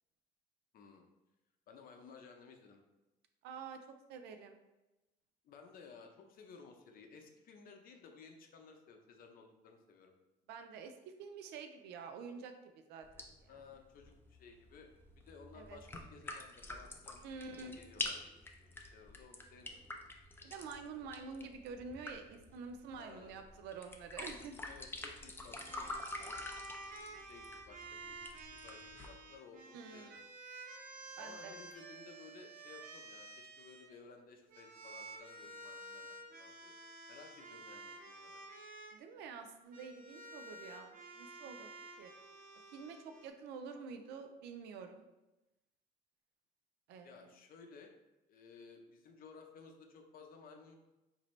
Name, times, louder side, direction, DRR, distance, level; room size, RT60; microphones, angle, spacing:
voice 1, 0.7-1.0 1.7-2.8 5.4-10.1 13.5-14.9 15.2-19.8 22.9-23.3 24.7-25.9 26.2-26.4 26.8-28.2 28.6-30.2 31.2-36.7 37.1-38.4 47.0-47.9 48.3-50.8, left 5 dB, 60° left, 4 dB, 0.6 m, -57 dB
voice 2, 3.4-3.8 4.1-4.6 10.5-10.9 11.2-13.5 15.5-15.8 17.2-17.8 20.4-24.5 29.7-30.2 31.2-31.5 38.9-41.7 42.0-42.1 42.7-45.0 46.9-47.4, right 5 dB, 80° right, 6 dB, 0.4 m, -48 dB
sound 1, 13.0-29.1, left 2 dB, 15° left, 0.5 m, -48 dB
sound 2, 25.4-33.9 34.5-38.9 39.7-43.3, right 2 dB, 55° right, 0.8 m, -51 dB
5.0 x 2.6 x 3.1 m, 1.0 s
cardioid pair, 110°, 17 cm